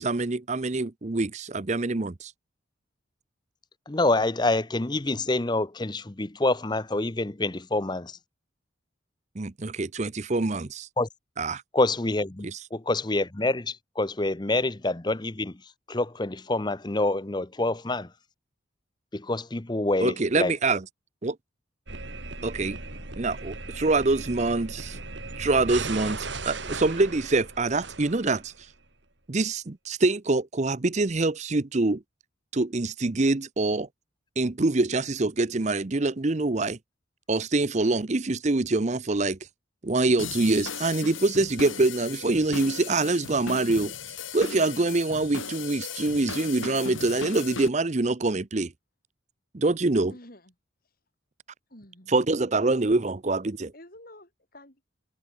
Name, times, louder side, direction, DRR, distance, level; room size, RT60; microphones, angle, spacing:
voice 1, 0.0-2.3 9.4-10.9 11.4-11.6 12.4-12.6 20.0-20.8 21.2-21.4 22.4-22.8 23.2-25.0 25.4-28.5 29.3-32.0 32.5-33.9 34.4-36.8 37.3-39.4 39.8-43.9 44.3-48.7 49.5-50.1 52.1-53.7, right 2 dB, 35° right, 0.7 m, -25 dB
voice 2, 3.9-8.2 11.0-11.1 11.7-15.6 15.9-18.1 19.1-20.5, left 2 dB, 20° left, 0.7 m, -27 dB
sound 1, 21.9-28.7, right 3 dB, 65° right, 4.5 m, -37 dB
sound 2, 40.2-47.7, left 5 dB, 80° left, 4.6 m, -37 dB
voice 3, 50.1-50.5 51.7-52.1 53.7-54.8, left 1 dB, 45° left, 5.9 m, -49 dB
head